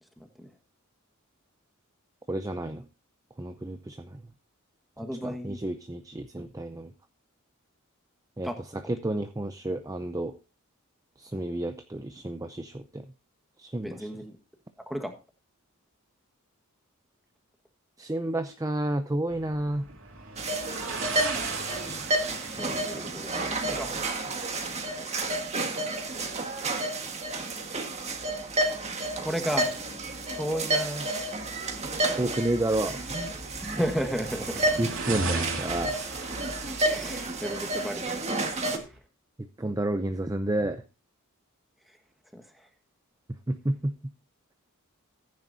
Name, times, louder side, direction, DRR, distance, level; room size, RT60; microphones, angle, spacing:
voice 1, 2.3-2.9 3.4-4.2 5.2-6.9 8.4-10.4 11.2-13.1 13.6-14.1 18.0-19.9 32.2-33.0 34.8-36.0 39.4-40.8 43.5-44.1, right 1 dB, 15° right, 8 dB, 0.5 m, -31 dB
voice 2, 5.0-5.6 8.4-8.6 13.8-14.4 14.8-15.1 22.6-23.9 29.2-29.7 30.3-31.3 33.6-34.7 36.8-39.0 41.9-42.0 42.3-42.7, equal, ahead, 4 dB, 1.5 m, -34 dB
sound 1, 19.3-39.0, right 3 dB, 65° right, 2.9 m, -40 dB
sound 2, 20.4-38.8, right 2 dB, 30° right, 1.7 m, -31 dB
14.5 x 9.6 x 2.7 m, 0.30 s
head